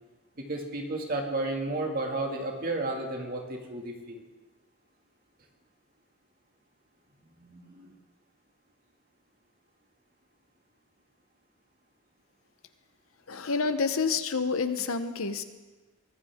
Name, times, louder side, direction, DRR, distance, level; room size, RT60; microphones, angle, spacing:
voice 1, 0.4-4.2 7.4-7.9, right 2 dB, 40° right, 1 dB, 2.2 m, -33 dB
voice 2, 13.3-15.4, left 4 dB, 70° left, 10 dB, 0.9 m, -28 dB
23.0 x 15.0 x 3.7 m, 1.2 s
head